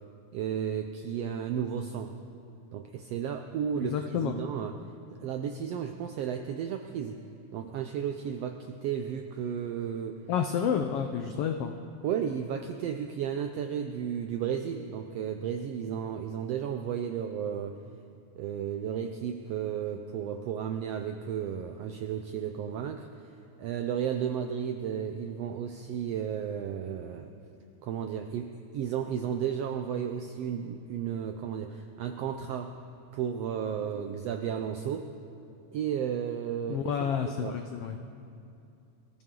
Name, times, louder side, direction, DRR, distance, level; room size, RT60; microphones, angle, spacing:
voice 1, 0.3-2.1 2.7-4.7 5.2-7.2 7.5-10.2 12.0-17.8 18.4-23.3 23.6-27.3 27.8-32.7 33.1-35.1 35.7-37.1 37.4-37.6, right 8 dB, 85° right, 6 dB, 1.4 m, -33 dB
voice 2, 3.8-4.3 10.3-11.7 36.7-38.0, left 8 dB, 90° left, 5 dB, 1.3 m, -30 dB
23.0 x 14.0 x 3.8 m, 2.6 s
omnidirectional pair, 3.5 m